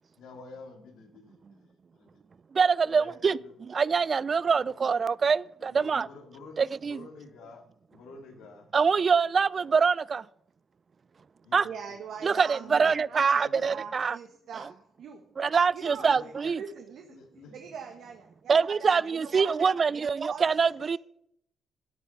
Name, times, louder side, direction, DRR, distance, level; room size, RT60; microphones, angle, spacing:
voice 1, 0.2-2.3 2.8-3.5 4.5-4.7 5.6-7.6 7.9-8.7 11.4-12.0 12.6-13.8 15.9-16.3 17.1-17.7, left 3 dB, 85° left, 2.4 m, -49 dB
voice 2, 2.5-6.1 6.6-7.0 8.7-10.3 11.5-11.7 12.2-14.2 14.5-14.7 15.4-16.6 18.5-21.0, right 5 dB, 40° right, 0.4 m, -25 dB
voice 3, 11.6-14.7 15.0-15.2 15.7-16.1 16.4-17.1 17.5-19.5 20.3-21.0, right 6 dB, 70° right, 1.5 m, -42 dB
12.5 x 8.5 x 5.9 m
cardioid pair, 90°, 0 cm